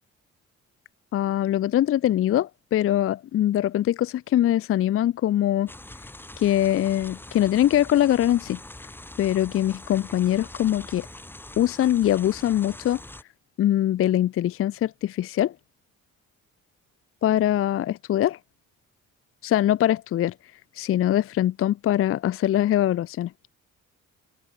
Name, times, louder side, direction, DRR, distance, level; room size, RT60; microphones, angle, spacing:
voice 1, 1.1-5.7 6.4-8.6 9.2-11.1 11.6-13.0 13.6-15.5 17.2-18.4 19.4-20.3 20.8-23.3, left 12 dB, 50° left, 0.5 m, -22 dB
sound 1, 5.7-13.2, left 1 dB, 5° left, 0.8 m, -43 dB
open air
cardioid pair, 90°, 30 cm